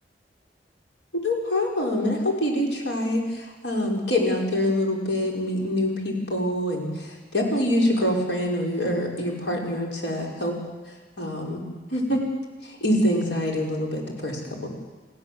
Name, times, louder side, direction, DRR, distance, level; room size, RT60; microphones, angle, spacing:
voice 1, 1.1-10.6 11.2-11.6 11.9-12.2 12.6-14.7, left 1 dB, 90° left, -1 dB, 5.7 m, -25 dB
29.0 x 16.0 x 7.9 m, 1.2 s
head